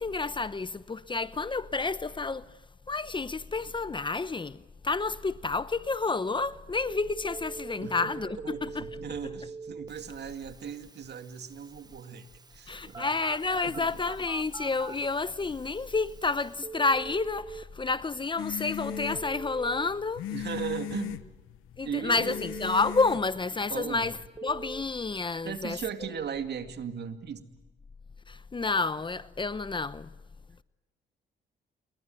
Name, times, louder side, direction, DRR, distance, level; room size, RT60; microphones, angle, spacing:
voice 1, 0.0-2.5 2.9-8.9 12.7-20.2 21.8-24.2 24.4-26.1 28.3-30.1, left 3 dB, 25° left, 0.9 m, -30 dB
Telephone, 6.8-17.6 18.9-19.9 22.1-23.1 24.4-24.8, right 4 dB, 20° right, 1.3 m, -44 dB
voice 2, 7.8-8.1 8.4-13.2 13.6-13.9 20.3-21.3 21.8-22.4 23.7-24.1 25.4-27.5, right 7 dB, 60° right, 2.3 m, -37 dB
sound 1, 18.4-23.8, left 13 dB, 85° left, 1.0 m, -39 dB
29.0 x 22.0 x 9.1 m
cardioid pair, 90°, 20 cm